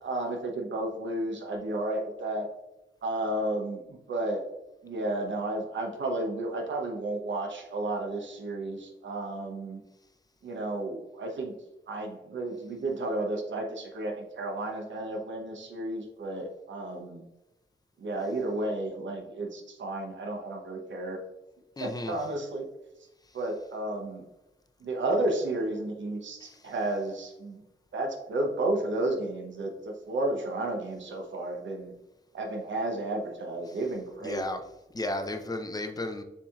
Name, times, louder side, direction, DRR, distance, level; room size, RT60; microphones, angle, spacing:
voice 1, 0.0-2.5 3.0-4.4 4.8-9.8 10.4-11.5 11.9-17.2 18.0-21.2 21.8-22.6 23.3-24.2 24.8-27.6 27.9-31.9 32.3-34.4, right 2 dB, 70° right, 2 dB, 0.7 m, -32 dB
voice 2, 21.8-22.2 26.4-26.6 34.2-34.6 34.9-36.2, left 2 dB, 20° left, 6 dB, 0.5 m, -33 dB
7.1 x 2.7 x 2.4 m, 0.97 s
wide cardioid pair, 95°, 20 cm